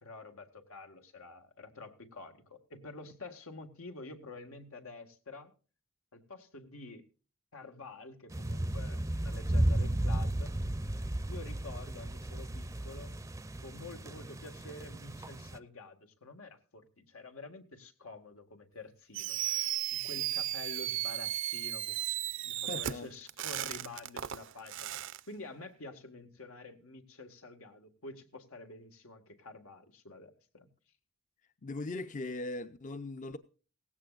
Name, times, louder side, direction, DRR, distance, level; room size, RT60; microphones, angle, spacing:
voice 1, 0.0-5.5 6.1-7.1 7.5-10.6 11.3-13.2 13.6-22.2 22.4-30.7, left 3 dB, 85° left, 1.8 m, -48 dB
sound 1, 8.3-15.6, right 1 dB, 15° right, 0.5 m, -34 dB
Fireworks, 19.1-25.2, right 13 dB, 60° right, 0.5 m, -35 dB
voice 2, 22.7-23.1 31.6-33.4, left 2 dB, 35° left, 0.6 m, -39 dB
17.5 x 15.5 x 2.5 m
head